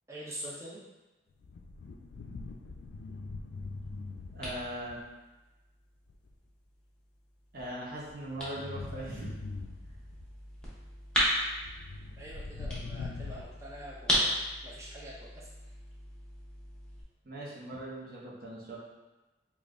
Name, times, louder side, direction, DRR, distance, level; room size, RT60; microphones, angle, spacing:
voice 1, 0.1-0.8 12.2-14.3 14.6-15.5, equal, 15° right, -6 dB, 0.5 m, -44 dB
sound 1, 1.3-5.1 6.1-6.3 7.6-10.2 11.6-13.4, left 3 dB, 75° left, 0.3 m, -42 dB
sound 2, 3.5-17.0, equal, 5° left, 0.8 m, -37 dB
voice 2, 4.3-5.0 7.5-9.3 17.2-18.8, right 1 dB, 55° right, -5 dB, 0.7 m, -40 dB
5.1 x 2.4 x 2.5 m, 1.1 s
head